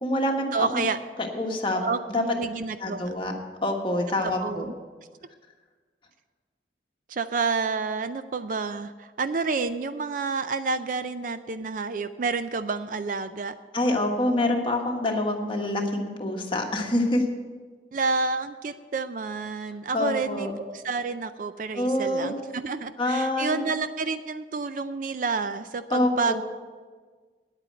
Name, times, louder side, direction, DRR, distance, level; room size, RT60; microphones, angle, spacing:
voice 1, 0.0-0.8 1.2-1.8 2.1-2.2 2.8-3.3 3.6-4.7 13.7-17.2 19.9-20.5 21.7-22.3 23.0-23.6 25.9-26.4, left 1 dB, 25° left, 1 dB, 1.4 m, -26 dB
voice 2, 0.5-1.0 1.7-3.0 4.2-4.7 7.1-13.5 17.9-20.5 20.7-26.3, right 4 dB, 45° right, 11 dB, 0.4 m, -29 dB
9.9 x 8.8 x 7.6 m, 1.5 s
head